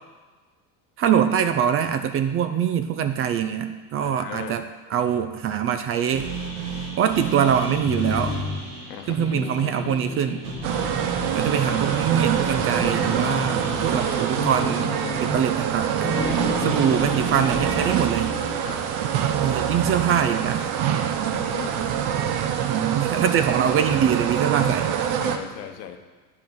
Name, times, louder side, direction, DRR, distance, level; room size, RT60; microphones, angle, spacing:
voice 1, 1.0-4.7 4.9-6.3 7.0-8.4 9.1-10.4 11.3-14.9 15.2-16.1 16.6-18.4 19.4-20.7 22.6-24.9, right 8 dB, 30° right, 9 dB, 0.4 m, -23 dB
voice 2, 4.0-4.6 8.9-9.2 16.5-16.8 18.6-18.9 21.3-21.8 24.5-24.7 25.1-26.0, left 10 dB, 80° left, 7 dB, 1.0 m, -37 dB
sound 1, 6.1-20.3, right 4 dB, 80° right, 2.2 m, -34 dB
sound 2, 7.8-8.8 9.1-12.2 12.5-15.7 16.0-18.7, left 4 dB, 15° left, 0.7 m, -33 dB
sound 3, 10.6-25.4, right 9 dB, 50° right, 0.8 m, -25 dB
9.0 x 5.2 x 4.6 m, 1.4 s
supercardioid pair, 100°, 48 cm